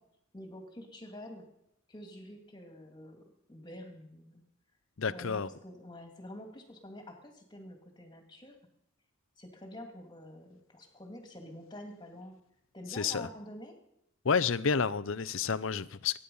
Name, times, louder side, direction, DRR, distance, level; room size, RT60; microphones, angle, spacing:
voice 1, 0.3-1.5 1.9-3.2 3.5-4.4 5.1-8.6 9.4-12.4 12.7-13.7, left 1 dB, 20° left, 2.4 m, -47 dB
voice 2, 5.0-5.5 12.9-13.3 14.2-16.2, left 5 dB, 60° left, 0.6 m, -30 dB
22.5 x 10.0 x 5.5 m
head